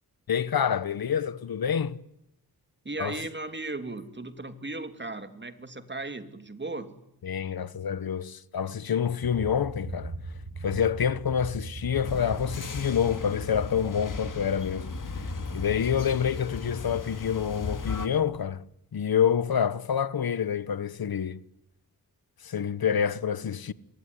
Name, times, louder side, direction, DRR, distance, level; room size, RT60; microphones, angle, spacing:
voice 1, 0.3-2.0 3.0-3.2 7.2-10.1 10.6-15.2 15.5-18.6 18.9-21.4 22.4-23.7, left 8 dB, 70° left, 1.2 m, -27 dB
voice 2, 2.8-7.0, right 2 dB, 30° right, 2.8 m, -36 dB
sound 1, 9.2-18.5, right 3 dB, 60° right, 4.4 m, -42 dB
sound 2, 12.0-18.1, left 4 dB, 55° left, 3.0 m, -36 dB
27.0 x 22.5 x 9.9 m
wide cardioid pair, 75°, 37 cm